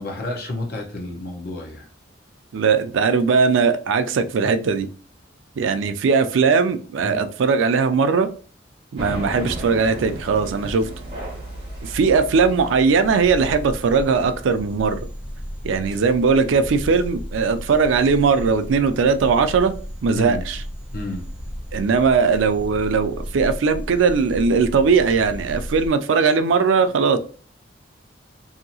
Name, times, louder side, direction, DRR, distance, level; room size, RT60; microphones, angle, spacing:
voice 1, 0.0-1.9 7.0-7.3 20.1-20.4 20.9-21.3, left 2 dB, 55° left, 1 dB, 0.8 m, -30 dB
voice 2, 2.5-4.9 5.6-8.3 8.9-10.9 11.8-15.0 15.6-19.7 20.0-20.6 21.7-27.2, right 5 dB, 85° right, 10 dB, 0.4 m, -19 dB
sound 1, 9.0-14.3, right 1 dB, 30° right, 1.1 m, -34 dB
sound 2, 13.0-25.9, equal, 5° right, 0.9 m, -34 dB
2.8 x 2.6 x 2.7 m, 0.40 s
head